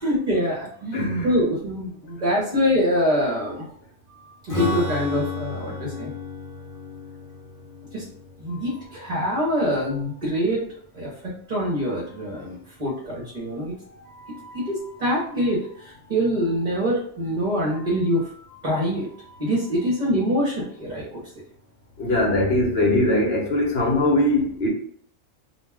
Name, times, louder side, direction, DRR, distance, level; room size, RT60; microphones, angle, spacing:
voice 1, 0.0-1.0 1.2-3.7 4.5-6.1 7.9-8.0 8.4-10.6 10.9-11.1 11.5-13.7 14.1-21.2, equal, 40° right, 0.7 m, -25 dB
voice 2, 0.9-1.3 22.0-24.7, left 1 dB, 55° left, 0.9 m, -21 dB
Strum, 4.5-10.1, left 3 dB, 30° left, 0.8 m, -33 dB
2.3 x 2.2 x 3.3 m
omnidirectional pair, 1.3 m